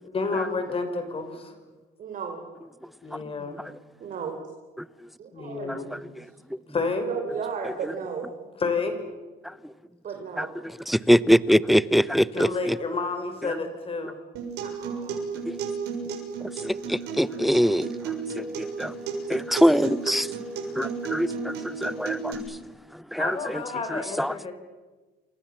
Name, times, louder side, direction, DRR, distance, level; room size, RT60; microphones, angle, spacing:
voice 1, 0.0-1.5 3.0-3.6 5.3-5.9 6.7-7.1 8.6-9.0 12.3-14.2 23.2-24.5, left 4 dB, 35° left, 5.7 m, -30 dB
voice 2, 2.0-2.4 4.0-4.4 5.2-5.9 6.1-6.2 7.0-8.3 10.0-10.5 14.6-15.2, right 6 dB, 50° right, 4.0 m, -34 dB
voice 3, 5.7-6.0 6.5-6.6 7.8-7.9 9.4-9.7 10.4-12.8 13.4-13.6 15.5-15.6 16.4-18.9 19.3-20.3 20.7-22.6 22.9-23.6 23.9-24.4, equal, ahead, 0.8 m, -24 dB
Acoustic guitar, 14.4-22.3, right 5 dB, 80° right, 7.0 m, -33 dB
28.5 x 26.0 x 7.4 m
cardioid pair, 110°, 17 cm